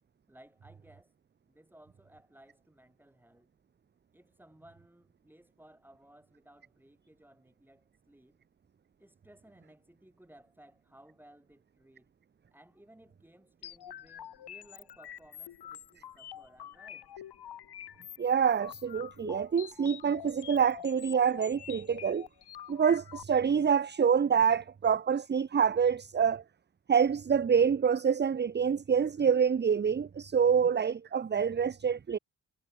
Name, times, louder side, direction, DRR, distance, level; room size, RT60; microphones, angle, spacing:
voice 1, 0.3-1.1 1.5-3.5 4.1-8.4 9.0-12.1 12.5-17.1, right 1 dB, 5° right, 5.3 m, -59 dB
sound 1, 13.6-23.2, left 10 dB, 75° left, 1.5 m, -47 dB
voice 2, 18.2-22.3 22.7-26.4 26.9-32.2, right 7 dB, 25° right, 0.5 m, -26 dB
wide cardioid pair, 145°, 40 cm